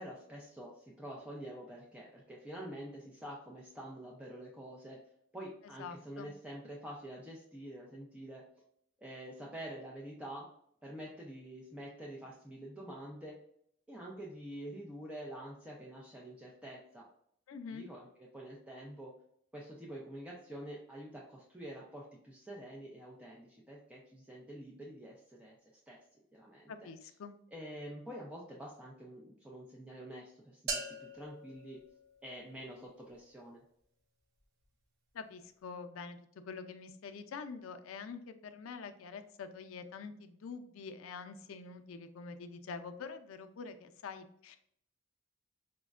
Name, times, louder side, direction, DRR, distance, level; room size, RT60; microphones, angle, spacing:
voice 1, 0.0-5.0 5.3-8.4 9.0-10.5 10.8-13.4 13.9-17.0 17.7-19.1 19.5-25.5 25.9-26.0 26.3-27.1 27.5-31.8 32.2-33.6, right 1 dB, 5° right, -4 dB, 0.4 m, -47 dB
voice 2, 5.8-6.3 17.5-17.9 26.7-27.4 35.1-36.2 36.5-44.6, left 5 dB, 90° left, 8 dB, 0.4 m, -46 dB
sound 1, 30.7-32.7, right 3 dB, 55° right, 0.6 m, -42 dB
5.1 x 2.1 x 2.3 m, 0.67 s
head